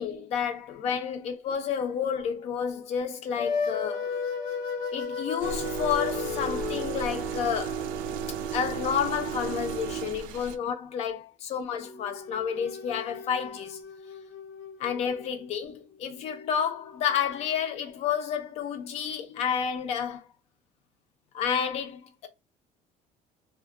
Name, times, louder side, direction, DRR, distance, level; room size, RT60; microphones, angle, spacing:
voice 1, 0.0-4.1 4.9-7.9 8.5-13.8 14.8-20.3 21.3-22.3, left 8 dB, 50° left, 0.5 m, -30 dB
sound 1, 3.4-10.7 11.8-17.9, left 5 dB, 70° left, 0.9 m, -37 dB
sound 2, 5.4-10.6, right 7 dB, 75° right, 0.4 m, -33 dB
2.2 x 2.1 x 3.6 m
cardioid pair, 165°, 14 cm